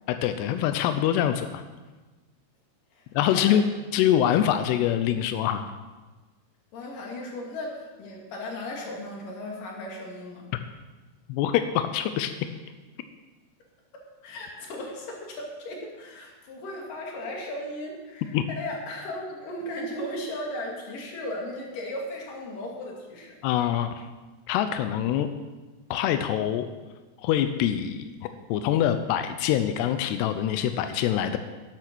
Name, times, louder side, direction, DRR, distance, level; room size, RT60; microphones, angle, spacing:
voice 1, 0.1-1.6 3.1-3.6 3.9-5.6 11.3-12.3 18.3-18.5 23.4-24.1 24.5-25.3 25.9-26.7 27.2-28.1 28.5-31.4, left 10 dB, 90° left, 9 dB, 2.4 m, -24 dB
voice 2, 6.7-10.4 14.2-23.3, left 1 dB, 50° left, -1 dB, 3.5 m, -36 dB
12.5 x 10.5 x 6.2 m, 1.2 s
omnidirectional pair, 5.6 m